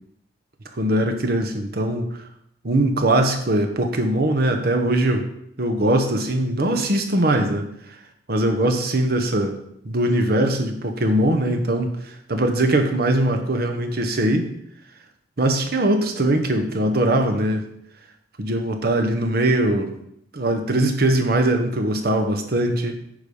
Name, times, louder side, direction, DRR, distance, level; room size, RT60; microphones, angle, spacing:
voice 1, 0.8-2.1 2.6-5.3 5.6-7.7 8.3-9.5 9.8-14.5 15.4-17.6 18.4-19.9 20.3-22.9, right 1 dB, 60° right, 5 dB, 1.1 m, -21 dB
9.0 x 5.0 x 5.4 m, 0.76 s
head